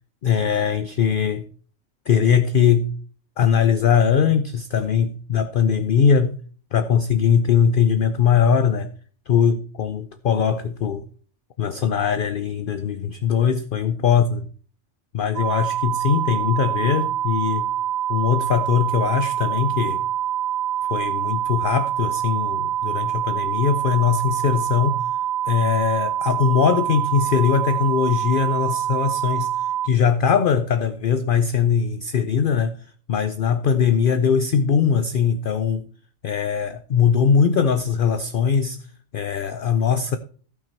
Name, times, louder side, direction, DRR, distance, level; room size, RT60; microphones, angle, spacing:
voice 1, 0.2-1.5 2.1-3.0 3.4-6.4 6.7-8.9 9.3-11.0 11.6-14.5 15.1-17.7 18.1-20.0 20.9-25.0 25.5-29.5 29.8-32.8 33.1-35.9 36.2-38.8 39.1-40.2, left 7 dB, 55° left, 0.7 m, -20 dB
sound 1, 15.4-29.9, right 11 dB, 55° right, 0.5 m, -25 dB
14.5 x 6.0 x 4.5 m
omnidirectional pair, 1.3 m